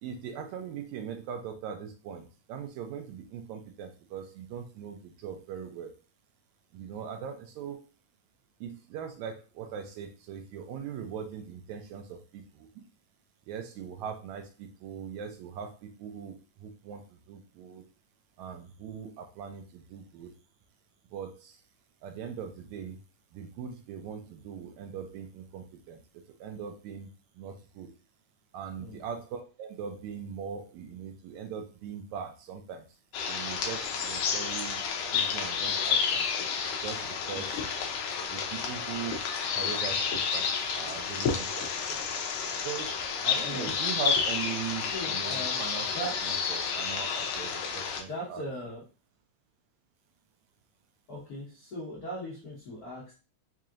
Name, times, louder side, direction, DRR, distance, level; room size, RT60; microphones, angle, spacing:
voice 1, 0.0-5.9 6.7-7.9 8.6-12.9 13.5-17.8 18.4-20.3 21.1-21.6 22.0-23.0 23.3-27.1 27.4-27.9 28.5-32.9 33.3-34.8 35.1-36.3 36.8-37.6 38.3-42.0 42.6-45.9 46.2-48.4, right 7 dB, 80° right, 5 dB, 1.8 m, -40 dB
sound 1, 33.1-48.0, left 6 dB, 90° left, 1.3 m, -30 dB
voice 2, 43.4-43.7 44.8-47.3 48.1-48.8 51.1-53.1, equal, 70° left, -6 dB, 0.9 m, -40 dB
4.9 x 2.8 x 2.4 m, 0.34 s
omnidirectional pair, 3.5 m